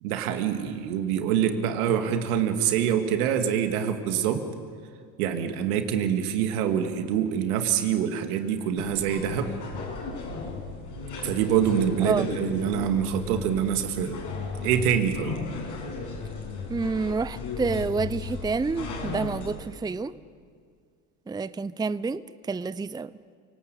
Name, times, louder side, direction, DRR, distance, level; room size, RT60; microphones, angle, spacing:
voice 1, 0.0-4.5 5.2-9.5 11.2-14.1 14.6-15.4, right 9 dB, 75° right, 2.5 m, -25 dB
sound 1, 8.8-19.6, left 4 dB, 60° left, 7.4 m, -35 dB
voice 2, 16.7-20.1 21.3-23.1, right 4 dB, 10° right, 0.6 m, -28 dB
29.0 x 19.0 x 8.4 m
hypercardioid pair, 70°, 44 cm